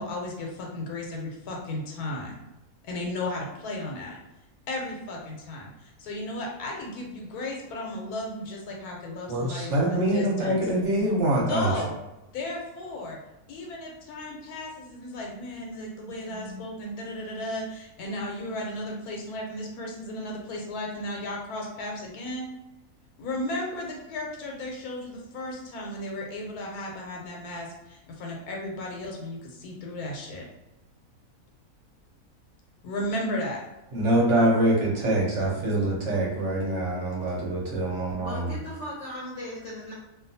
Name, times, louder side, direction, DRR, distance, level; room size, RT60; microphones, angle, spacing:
voice 1, 0.0-2.3 2.8-4.2 4.7-10.6 11.5-11.9 12.3-13.2 13.5-22.4 23.2-30.5 32.8-33.6, left 1 dB, 90° left, -1 dB, 1.1 m, -34 dB
voice 2, 9.3-11.7 33.9-38.5, right 1 dB, 60° right, -3 dB, 1.0 m, -24 dB
voice 3, 16.2-16.6 38.2-39.9, left 1 dB, 65° left, -5 dB, 0.8 m, -38 dB
2.6 x 2.3 x 2.6 m, 0.97 s
omnidirectional pair, 1.5 m